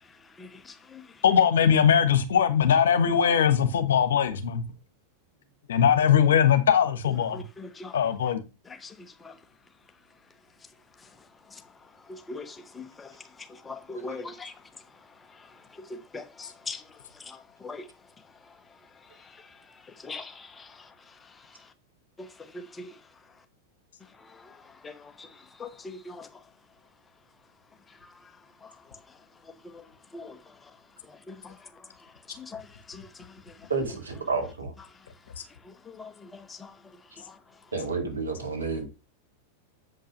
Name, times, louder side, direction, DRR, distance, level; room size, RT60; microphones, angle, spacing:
voice 1, 0.0-1.2 7.3-8.0 8.6-9.4 11.0-17.9 18.4-21.7 22.2-23.0 24.0-26.4 27.9-28.3 28.6-30.7 31.0-33.7 34.9-35.1 35.5-37.4, left 3 dB, 15° left, 1.0 m, -44 dB
voice 2, 1.2-4.6 5.7-7.5 7.9-8.4, left 8 dB, 65° left, 1.2 m, -21 dB
voice 3, 33.7-34.7 37.7-38.9, right 4 dB, 75° right, 2.8 m, -30 dB
7.8 x 5.3 x 5.1 m
figure-of-eight pair, 90°, 0 cm